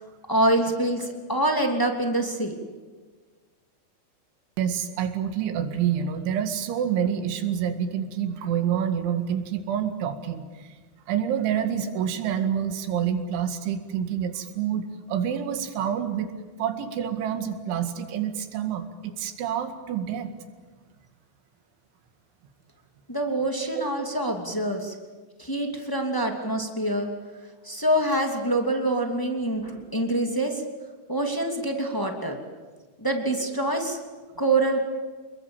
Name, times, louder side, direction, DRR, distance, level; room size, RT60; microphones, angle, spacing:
voice 1, 0.3-2.5 23.1-24.9 25.4-27.1 27.6-30.6 31.1-32.4 33.0-34.0 34.4-34.8, right 1 dB, 10° left, 2 dB, 1.1 m, -25 dB
voice 2, 4.6-10.7 11.1-16.3 16.6-20.3 23.8-23.9, right 8 dB, 80° right, 7 dB, 4.3 m, -27 dB
27.5 x 22.0 x 8.9 m, 1.4 s
omnidirectional pair, 5.4 m